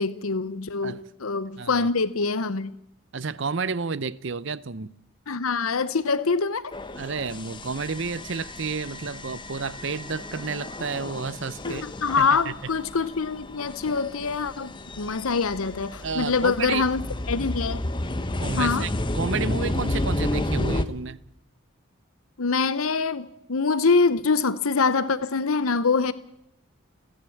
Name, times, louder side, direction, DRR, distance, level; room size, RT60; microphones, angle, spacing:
voice 1, 0.0-2.7 5.3-6.7 11.6-17.0 17.3-17.8 18.6-18.9 22.4-26.1, left 4 dB, 75° left, 0.9 m, -24 dB
voice 2, 1.6-1.9 3.1-4.9 6.9-11.9 12.2-12.5 16.0-16.8 18.4-21.2, right 4 dB, 55° right, 0.7 m, -31 dB
sound 1, 6.7-20.8, left 1 dB, 20° left, 0.9 m, -32 dB
29.5 x 10.0 x 8.6 m
head